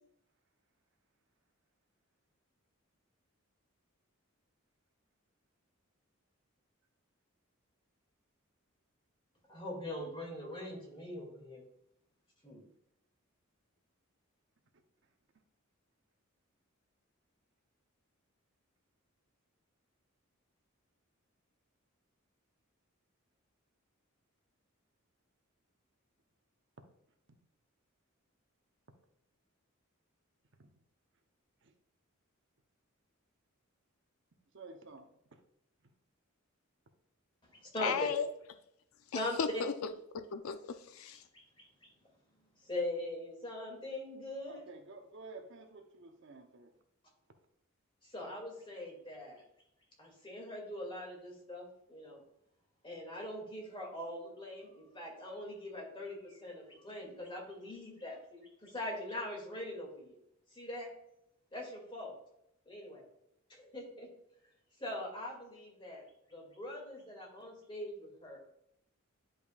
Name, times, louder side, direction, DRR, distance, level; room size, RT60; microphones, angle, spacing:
voice 1, 9.5-11.6 12.4-12.7 37.6-38.1 39.1-39.4 41.3-41.9 42.6-44.6 48.0-49.4 50.0-52.2 52.8-60.2 60.5-60.9 61.5-62.1 62.7-63.0 63.5-64.1 64.8-66.0 66.3-68.4, left 1 dB, 25° left, 2.3 m, -42 dB
voice 2, 34.5-35.4 44.5-46.7, right 3 dB, 60° right, 0.8 m, -52 dB
voice 3, 37.8-38.3 39.1-39.7 40.1-41.2, left 6 dB, 85° left, 0.5 m, -35 dB
10.5 x 5.2 x 2.4 m
head